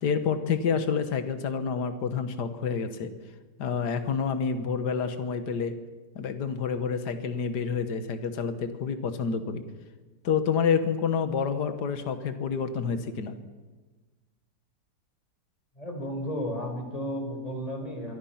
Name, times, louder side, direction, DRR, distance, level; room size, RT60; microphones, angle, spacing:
voice 1, 0.0-3.1 3.6-5.8 6.2-9.6 10.2-13.4, left 6 dB, 65° left, 9 dB, 2.0 m, -28 dB
voice 2, 15.8-18.2, equal, 20° left, 3 dB, 4.9 m, -33 dB
26.0 x 23.5 x 5.9 m, 1.3 s
omnidirectional pair, 1.9 m